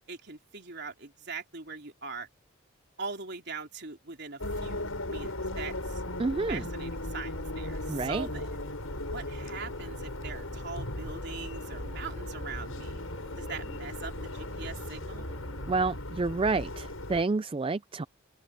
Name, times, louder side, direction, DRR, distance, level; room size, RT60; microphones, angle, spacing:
voice 1, 0.1-2.3 3.0-6.0 6.5-8.6 9.1-13.0 13.4-15.3, right 4 dB, 50° right, 3.7 m, -42 dB
sound 1, 4.4-17.2, left 1 dB, 75° left, 7.1 m, -37 dB
sound 2, 5.4-15.8, equal, 10° left, 3.3 m, -52 dB
voice 2, 6.2-6.6 7.9-8.3 15.7-18.1, right 3 dB, 25° right, 0.4 m, -29 dB
head